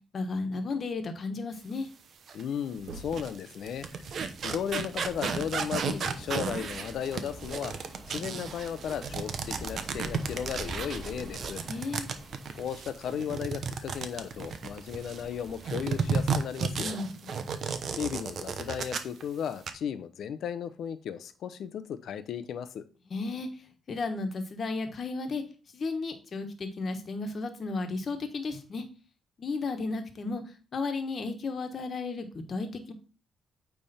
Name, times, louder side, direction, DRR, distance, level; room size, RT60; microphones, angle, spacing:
voice 1, 0.1-1.9 11.6-12.1 16.8-17.1 17.4-17.5 23.1-23.5 23.9-25.4 25.7-28.8 29.4-30.4 30.7-32.9, left 3 dB, 45° left, 7 dB, 1.3 m, -33 dB
sound 1, 2.2-2.5 2.8-3.4 5.1-5.2 7.1-7.2 8.1-8.2, right 3 dB, 85° right, 1.6 m, -45 dB
voice 2, 2.3-7.8 8.1-11.6 12.5-17.0 18.0-22.8, left 8 dB, 70° left, 12 dB, 0.7 m, -35 dB
sound 2, 2.3-2.4 3.0-15.2 15.6-19.2 19.5-19.7, right 5 dB, 55° right, 0.9 m, -33 dB
sound 3, 3.6-16.3, right 1 dB, 30° right, 3.6 m, -46 dB
8.8 x 3.5 x 4.2 m, 0.35 s
cardioid pair, 90°, 0 cm